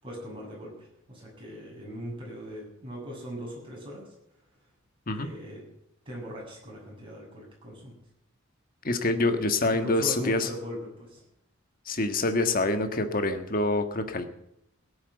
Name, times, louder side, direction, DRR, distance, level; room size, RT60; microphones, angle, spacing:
voice 1, 0.0-4.1 5.1-5.6 6.1-7.9 9.7-11.2, equal, 25° right, -3 dB, 7.5 m, -40 dB
voice 2, 8.8-10.5 11.9-14.2, left 2 dB, 45° left, 7 dB, 1.5 m, -26 dB
17.0 x 8.8 x 8.0 m, 0.78 s
head